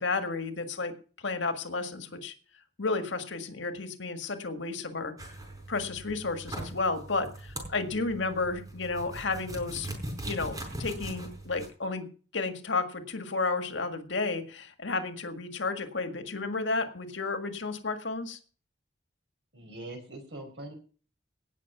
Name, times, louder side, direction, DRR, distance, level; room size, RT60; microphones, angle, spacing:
voice 1, 0.0-2.3 2.8-5.1 5.7-9.9 10.2-12.1 12.3-18.4, left 3 dB, 85° left, 7 dB, 1.8 m, -32 dB
sound 1, 5.2-11.7, right 1 dB, 20° right, 4.8 m, -40 dB
voice 2, 19.5-20.7, right 2 dB, 75° right, 4 dB, 5.0 m, -42 dB
18.0 x 6.3 x 6.0 m, 0.38 s
head